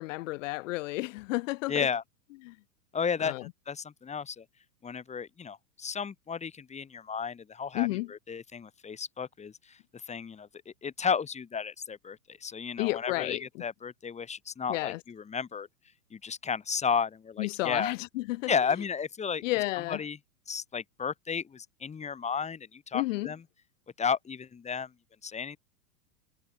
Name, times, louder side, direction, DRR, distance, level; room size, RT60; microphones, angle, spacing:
voice 1, 0.0-1.9 2.5-2.6 3.2-3.4 7.7-8.1 12.8-13.4 14.7-15.0 17.4-18.5 19.4-20.0 22.9-23.3, left 21 dB, 55° left, 2.5 m, -31 dB
voice 2, 1.7-2.0 2.9-4.5 4.8-9.8 10.1-15.7 16.1-17.9 18.5-19.4 19.8-20.2 20.5-23.4 24.0-24.9 25.2-25.6, left 6 dB, 15° left, 3.8 m, -33 dB
hypercardioid pair, 130°, 46 cm